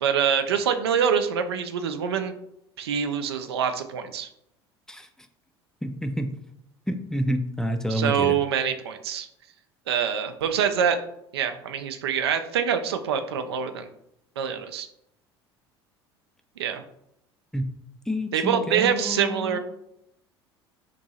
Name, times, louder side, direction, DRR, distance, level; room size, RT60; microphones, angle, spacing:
voice 1, 0.0-2.3 2.8-4.3 7.9-9.3 9.9-11.0 11.3-13.9 14.4-14.9 16.6-16.8 18.3-19.6, right 7 dB, 70° right, 8 dB, 0.4 m, -25 dB
voice 2, 5.8-6.3 6.9-8.3 17.5-17.7 18.1-19.6, equal, 5° left, 6 dB, 0.4 m, -28 dB
3.0 x 2.6 x 4.0 m, 0.76 s
figure-of-eight pair, 65°, 14 cm